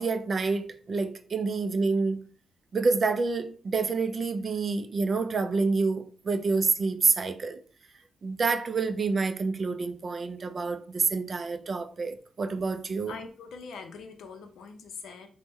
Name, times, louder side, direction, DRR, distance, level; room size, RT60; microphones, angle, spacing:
voice 1, 0.0-2.2 2.7-7.6 8.2-13.2, right 4 dB, 40° right, 0.3 m, -28 dB
voice 2, 13.1-15.3, left 5 dB, 80° left, 0.5 m, -43 dB
3.0 x 2.1 x 3.4 m
cardioid pair, 115°, 0 cm